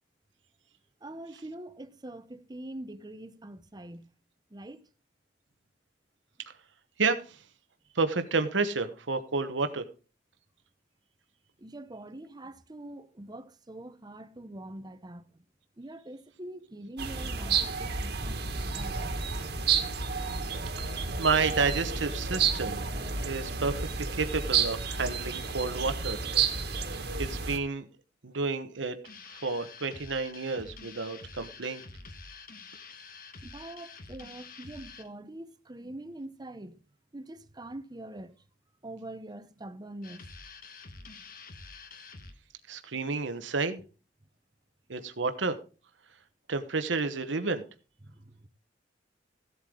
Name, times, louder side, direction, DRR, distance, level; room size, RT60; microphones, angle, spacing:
voice 1, 1.0-4.1 4.5-4.9 11.6-15.3 15.8-19.2 33.4-36.8 37.1-38.3 38.8-40.2 48.1-48.5, right 1 dB, 20° right, 0.8 m, -44 dB
voice 2, 7.0-7.4 7.9-9.8 20.8-22.8 23.2-26.2 27.2-27.9 28.2-29.0 29.3-31.8 42.7-43.8 44.9-45.6 46.5-47.6, right 4 dB, 85° right, 1.1 m, -30 dB
sound 1, 17.0-27.6, right 5 dB, 60° right, 1.7 m, -31 dB
sound 2, 29.0-35.1 40.0-42.3, left 4 dB, 50° left, 1.3 m, -47 dB
15.5 x 8.2 x 3.8 m
head